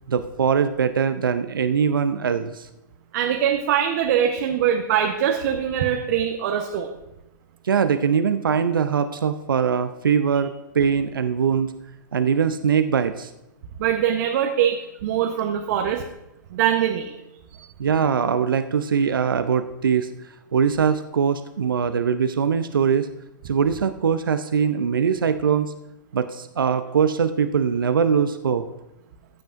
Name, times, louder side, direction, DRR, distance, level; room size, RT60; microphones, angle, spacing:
voice 1, 0.1-2.7 7.6-11.7 12.1-13.3 17.8-20.1 20.5-23.1 23.4-25.7 26.1-28.7, right 7 dB, 85° right, 11 dB, 0.5 m, -22 dB
voice 2, 3.1-6.9 13.8-16.0 16.5-17.1 17.6-17.7, right 9 dB, 55° right, 3 dB, 0.9 m, -22 dB
15.0 x 8.8 x 2.5 m, 0.94 s
hypercardioid pair, 115°, 11 cm